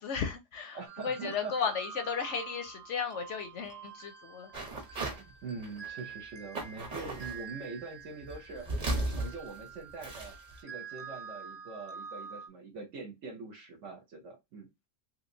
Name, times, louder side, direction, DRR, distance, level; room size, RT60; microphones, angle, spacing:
voice 1, 0.0-4.5 4.9-5.0, left 6 dB, 65° left, 0.8 m, -35 dB
voice 2, 0.7-1.5 5.2-8.7 9.0-14.7, right 4 dB, 60° right, 1.0 m, -43 dB
sound 1, 0.9-12.5, right 6 dB, 80° right, 0.3 m, -47 dB
sound 2, 4.5-5.2 5.6-6.1 6.5-7.4 8.2-10.6, right 2 dB, 35° right, 0.8 m, -35 dB
3.1 x 2.9 x 2.6 m
omnidirectional pair, 1.5 m